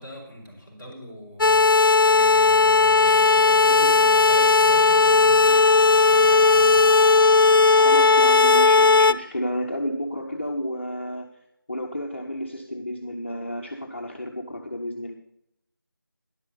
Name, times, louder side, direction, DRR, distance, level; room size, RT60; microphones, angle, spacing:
voice 1, 0.0-7.0, equal, 10° right, -11 dB, 3.8 m, -41 dB
sound 1, 1.4-9.1, left 4 dB, 70° left, 0.5 m, -16 dB
voice 2, 7.8-11.3 11.7-15.1, equal, 35° left, 1 dB, 0.8 m, -31 dB
11.0 x 5.7 x 6.8 m, 0.78 s
figure-of-eight pair, 175°, 12 cm